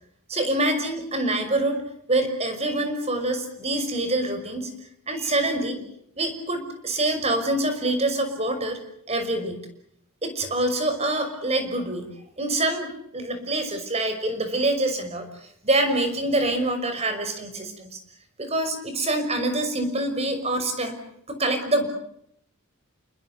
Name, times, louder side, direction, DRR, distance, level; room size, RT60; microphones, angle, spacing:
voice 1, 0.3-1.8 2.1-4.7 5.1-5.8 6.2-8.8 9.1-9.6 10.2-12.1 12.4-15.3 15.6-18.0 18.4-20.9 21.3-21.9, right 1 dB, 30° right, 8 dB, 5.8 m, -25 dB
30.0 x 20.5 x 8.1 m, 0.73 s
head